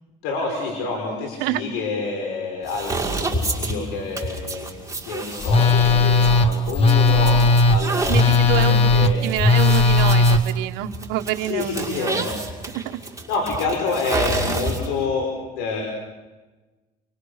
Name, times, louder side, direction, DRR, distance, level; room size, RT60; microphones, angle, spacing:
voice 1, 0.2-4.7 5.0-9.3 11.4-12.4 13.3-15.3 15.5-15.8, left 4 dB, 85° left, 1 dB, 6.0 m, -28 dB
sound 1, 2.6-15.1, right 2 dB, 15° right, 6.0 m, -30 dB
Telephone, 5.4-10.4, left 3 dB, 35° left, 1.6 m, -16 dB
voice 2, 8.1-12.3 12.7-13.0, right 13 dB, 80° right, 6 dB, 1.4 m, -27 dB
29.5 x 24.5 x 6.7 m, 1.2 s
cardioid pair, 115°, 17 cm